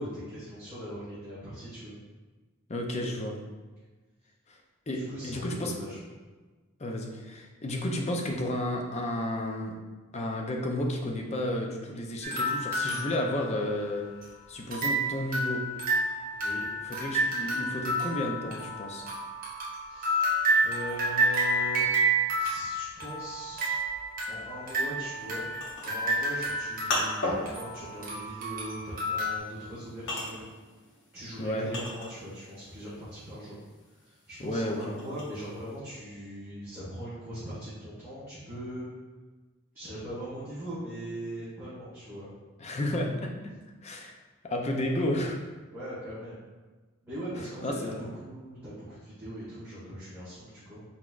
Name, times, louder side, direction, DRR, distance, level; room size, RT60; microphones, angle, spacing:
voice 1, 0.0-1.9 4.9-6.0 16.3-16.6 19.9-20.3 20.6-23.8 24.3-25.4 25.8-30.5 31.1-33.6 34.0-38.9 39.7-42.3 45.7-46.4 47.0-50.8, equal, 10° right, -13 dB, 1.5 m, -40 dB
voice 2, 2.7-3.4 4.5-4.6 4.9-5.7 6.8-9.8 10.1-14.1 14.5-15.7 16.8-19.1 31.4-31.7 34.4-35.0 42.6-43.5 43.8-44.1 44.4-45.4 47.6-48.0, left 1 dB, 30° left, 1 dB, 0.5 m, -32 dB
sound 1, 12.2-14.2 14.7-29.4, right 1 dB, 40° right, 0.9 m, -30 dB
sound 2, 25.2-32.5 32.8-35.7, left 1 dB, 60° left, 0.8 m, -36 dB
4.3 x 4.1 x 2.4 m, 1.3 s
head